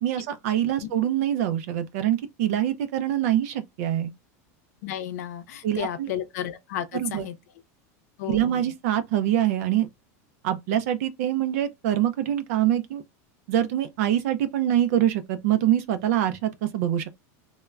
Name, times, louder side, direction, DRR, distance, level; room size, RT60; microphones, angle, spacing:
voice 1, 0.0-4.1 5.6-6.1 6.9-7.2 8.3-9.9 10.4-13.0 13.5-17.1, right 11 dB, 65° right, 0.4 m, -24 dB
voice 2, 4.8-7.3 8.2-8.7, left 10 dB, 75° left, 0.6 m, -33 dB
3.2 x 2.1 x 2.2 m
supercardioid pair, 160°, 9 cm